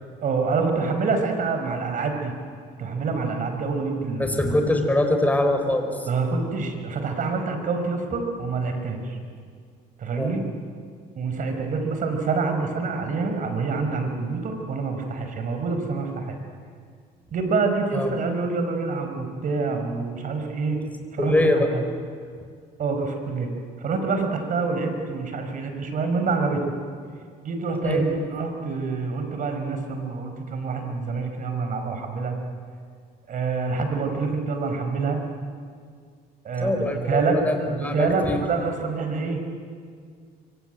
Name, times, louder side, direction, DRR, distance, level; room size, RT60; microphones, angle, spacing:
voice 1, 0.2-2.3 2.8-4.5 6.0-9.2 10.0-10.4 11.1-16.4 17.3-20.8 21.1-21.8 22.8-23.5 23.8-26.7 27.4-32.3 33.3-35.2 36.4-37.4 37.7-39.4, right 4 dB, 50° right, 5 dB, 5.1 m, -26 dB
voice 2, 4.2-6.0 10.2-10.3 17.9-18.1 21.2-21.7 27.8-28.0 36.6-38.4, left 1 dB, 10° left, 5 dB, 4.4 m, -23 dB
24.5 x 24.5 x 9.2 m, 2.1 s
cardioid pair, 110°, 17 cm